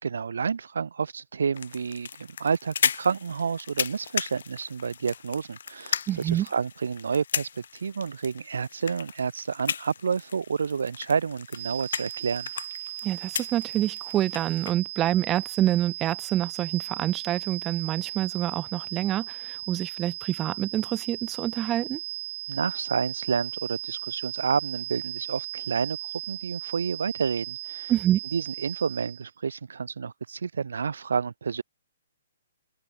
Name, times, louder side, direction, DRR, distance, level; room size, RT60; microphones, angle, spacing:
voice 1, 0.0-12.5 22.5-27.9 28.3-31.6, right 6 dB, 90° right, 3.8 m, -29 dB
sound 1, 1.5-14.7, left 7 dB, 70° left, 8.0 m, -35 dB
voice 2, 6.1-6.5 13.0-22.0 27.9-28.2, right 13 dB, 15° right, 2.3 m, -27 dB
sound 2, 11.5-29.3, right 17 dB, 35° right, 5.0 m, -37 dB
open air
hypercardioid pair, 165°, 0 cm